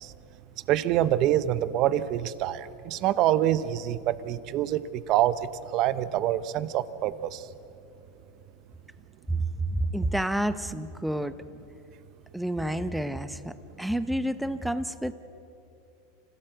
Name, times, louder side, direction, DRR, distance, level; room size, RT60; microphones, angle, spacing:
voice 1, 0.7-4.8 5.1-5.3 5.7-7.4, right 12 dB, 50° right, 15 dB, 0.8 m, -25 dB
voice 2, 9.7-11.4 12.3-15.1, right 1 dB, ahead, 12 dB, 0.8 m, -29 dB
25.5 x 16.5 x 8.0 m, 2.8 s
hypercardioid pair, 115°, 0 cm